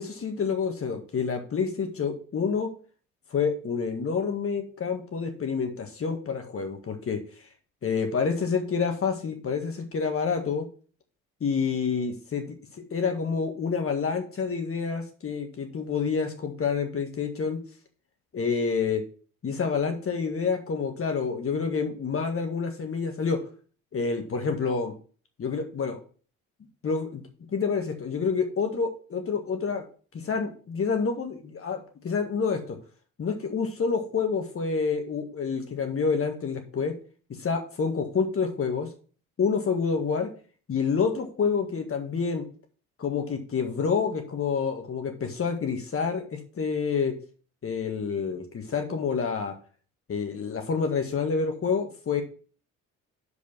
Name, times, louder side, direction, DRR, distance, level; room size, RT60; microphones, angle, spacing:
voice 1, 0.0-2.7 3.3-7.2 7.8-10.7 11.4-12.5 12.9-17.6 18.3-19.0 19.4-23.4 23.9-24.9 25.4-26.0 26.8-27.2 27.5-29.9 30.1-32.8 33.2-36.9 37.4-38.9 39.4-40.3 40.7-42.4 43.0-47.1 47.6-49.5 50.1-52.2, left 5 dB, 35° left, 4 dB, 1.8 m, -28 dB
6.5 x 5.1 x 7.0 m, 0.40 s
figure-of-eight pair, 50°, 41 cm